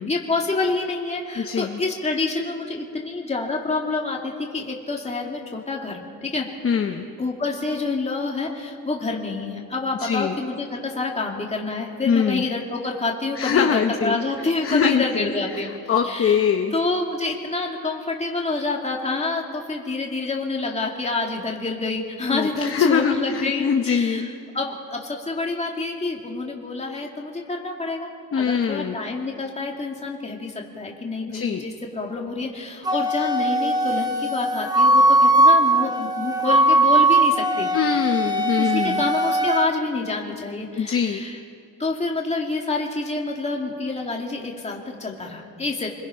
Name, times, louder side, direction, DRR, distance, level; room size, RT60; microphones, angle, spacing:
voice 1, 0.1-6.5 7.2-15.7 16.0-16.4 16.7-24.3 24.5-28.1 28.4-37.7 38.6-41.4 41.8-45.9, left 3 dB, 20° left, 0 dB, 2.3 m, -27 dB
voice 2, 1.4-1.8 6.6-7.1 10.0-10.4 12.0-12.4 13.4-14.2 14.6-16.7 22.3-24.3 28.3-29.0 31.3-31.7 37.7-39.1 40.8-41.2, left 7 dB, 40° left, 4 dB, 0.9 m, -23 dB
Wind instrument woodwind instrument, 32.9-39.7, right 1 dB, 10° right, 1.0 m, -19 dB
29.5 x 21.0 x 5.7 m, 2.3 s
wide cardioid pair, 180°, 35 cm